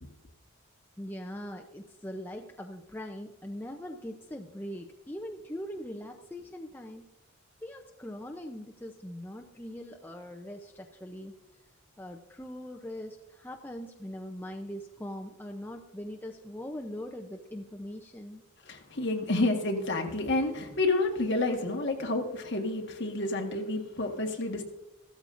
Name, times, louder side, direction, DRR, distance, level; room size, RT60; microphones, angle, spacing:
voice 1, 1.0-7.0 7.6-11.3 12.0-18.4, equal, 10° left, 0.5 m, -41 dB
voice 2, 18.6-24.6, left 2 dB, 55° left, 1.5 m, -29 dB
15.0 x 13.5 x 2.6 m
head